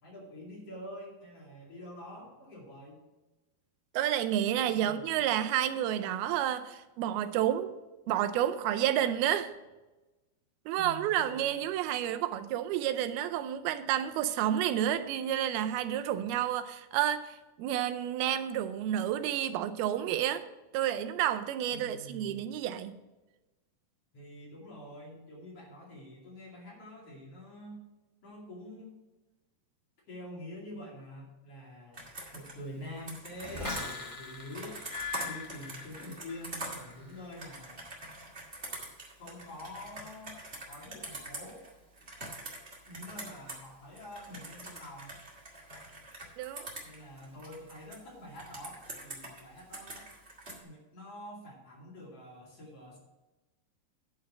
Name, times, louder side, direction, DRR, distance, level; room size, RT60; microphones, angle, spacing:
voice 1, 0.0-3.0 4.7-5.0 10.7-11.6 21.7-22.5 24.1-27.8 28.2-29.0 30.1-32.1 32.3-34.8 35.2-37.9 39.2-40.4 40.7-41.7 42.8-45.1 46.8-50.1 50.6-53.0, left 1 dB, 40° left, -4 dB, 3.1 m, -46 dB
voice 2, 3.9-7.7 8.1-9.5 10.7-20.4 20.7-22.9 46.4-46.7, right 11 dB, 85° right, 10 dB, 2.5 m, -30 dB
Computer keyboard, 31.9-43.7 43.9-48.0 48.3-50.6, right 2 dB, 30° right, 1.3 m, -44 dB
sound 1, 33.4-36.5 36.8-37.2, left 4 dB, 20° left, 0.9 m, -40 dB
10.5 x 4.7 x 7.4 m, 1.1 s
omnidirectional pair, 4.4 m